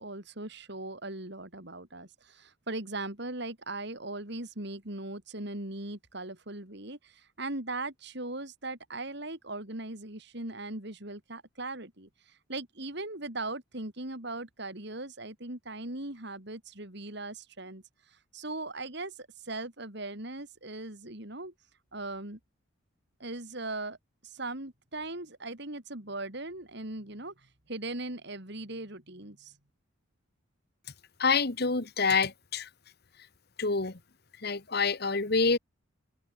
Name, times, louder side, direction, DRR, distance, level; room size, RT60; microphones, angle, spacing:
voice 1, 0.0-21.5 21.9-22.4 23.2-24.0 24.2-29.5, right 2 dB, 55° right, 3.8 m, -39 dB
voice 2, 31.2-32.7 33.6-34.0 34.4-35.6, left 4 dB, 50° left, 1.4 m, -27 dB
head